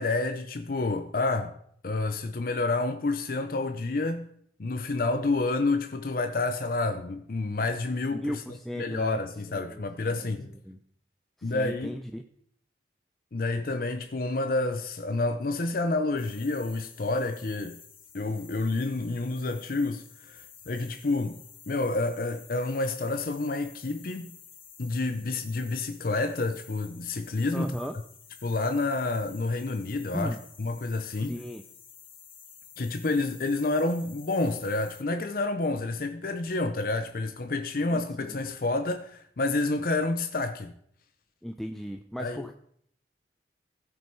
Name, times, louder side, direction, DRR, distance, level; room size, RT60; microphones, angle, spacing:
voice 1, 0.0-1.6 1.8-4.3 4.6-8.4 8.8-10.6 11.4-11.9 13.3-17.8 18.1-21.4 21.7-24.3 24.8-27.8 28.4-31.3 32.8-40.7 42.2-42.5, left 2 dB, 55° left, 0.6 m, -29 dB
voice 2, 8.1-9.2 9.5-10.1 10.6-10.8 11.4-12.2 27.5-28.0 30.1-30.4 31.3-31.6 37.8-38.4 41.4-42.5, equal, ahead, 0.4 m, -36 dB
sound 1, 16.2-35.0, left 8 dB, 30° left, 1.2 m, -51 dB
16.0 x 5.4 x 4.5 m
head